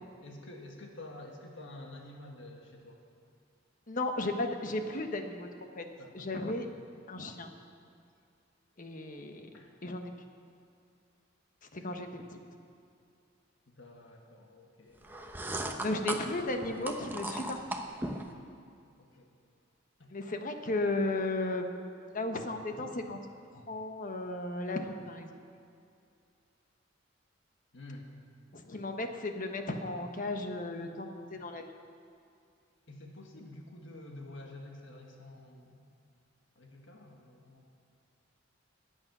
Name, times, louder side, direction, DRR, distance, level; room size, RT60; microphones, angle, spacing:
voice 1, 0.2-3.0 6.0-6.6 9.5-9.7 11.8-11.9 13.7-15.4 19.0-19.3 20.0-20.1 27.7-28.1 28.6-28.8 31.3-31.5 32.9-35.8 36.5-37.7, left 2 dB, 70° left, 1 dB, 1.7 m, -49 dB
voice 2, 3.9-5.5 5.8-5.9 6.1-6.7 7.1-7.5 8.8-9.5 9.8-10.1 11.7-12.4 15.8-17.8 20.1-23.2 23.5-25.3 28.5-31.7, left 2 dB, 45° left, 5 dB, 1.2 m, -35 dB
sound 1, 15.0-18.3, right 1 dB, 10° right, 0.9 m, -37 dB
21.0 x 8.7 x 6.1 m, 2.4 s
head